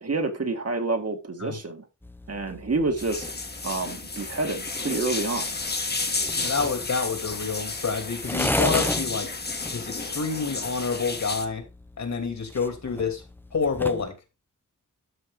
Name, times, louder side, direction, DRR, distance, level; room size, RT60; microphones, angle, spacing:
voice 1, 0.0-1.9 2.3-3.3 3.6-5.6, right 3 dB, 50° right, 2.0 m, -28 dB
sound 1, 2.0-14.1, left 1 dB, 5° left, 0.6 m, -36 dB
sound 2, 3.0-11.5, left 3 dB, 30° left, 1.4 m, -32 dB
voice 2, 6.4-9.3 9.7-11.6 12.0-13.2 13.5-14.2, left 4 dB, 60° left, 2.9 m, -28 dB
12.5 x 5.5 x 3.9 m
wide cardioid pair, 115°, 31 cm